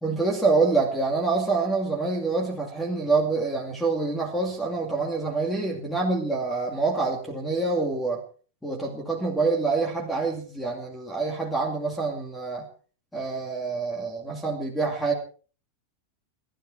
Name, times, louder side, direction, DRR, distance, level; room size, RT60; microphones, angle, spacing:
voice 1, 0.0-8.2 8.6-12.7 13.1-15.1, right 3 dB, 5° left, 2 dB, 2.5 m, -26 dB
19.5 x 12.5 x 4.7 m, 0.41 s
supercardioid pair, 175°, 0 cm